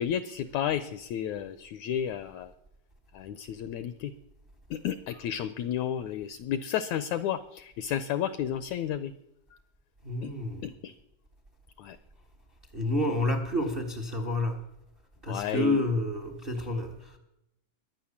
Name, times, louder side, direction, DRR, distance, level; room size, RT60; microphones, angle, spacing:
voice 1, 0.0-2.5 3.1-4.1 4.7-9.1 10.2-10.3 10.6-10.9 11.8-12.0 15.3-15.8, left 9 dB, 75° left, 14 dB, 1.7 m, -32 dB
voice 2, 10.0-10.7 12.7-14.6 15.2-17.2, left 1 dB, 45° right, 7 dB, 0.6 m, -29 dB
22.0 x 9.1 x 7.2 m, 0.83 s
omnidirectional pair, 3.9 m